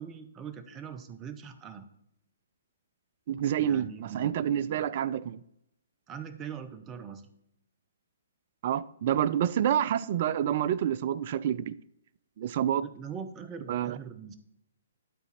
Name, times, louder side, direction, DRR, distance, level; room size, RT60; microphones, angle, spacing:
voice 1, 0.0-1.9 3.6-4.4 4.7-4.9 6.1-7.2 12.8-14.4, right 7 dB, 20° right, 0.7 m, -42 dB
voice 2, 3.3-5.4 8.6-11.8 12.4-12.8 13.7-14.0, right 10 dB, 45° right, 0.3 m, -28 dB
11.5 x 4.0 x 4.1 m
figure-of-eight pair, 125°, 0 cm